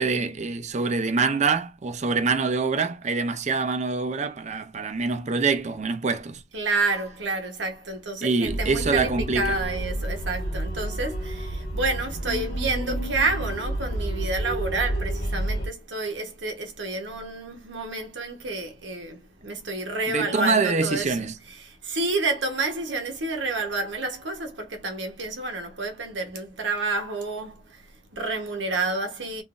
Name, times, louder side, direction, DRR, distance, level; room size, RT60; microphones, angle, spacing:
voice 1, 0.0-6.4 8.2-9.6 20.1-21.3, right 4 dB, 40° right, 0.5 m, -25 dB
voice 2, 6.5-21.2 21.5-29.4, right 3 dB, 75° right, 1.0 m, -29 dB
sound 1, 8.4-15.7, right 1 dB, 60° left, 1.5 m, -30 dB
3.7 x 2.6 x 2.5 m
head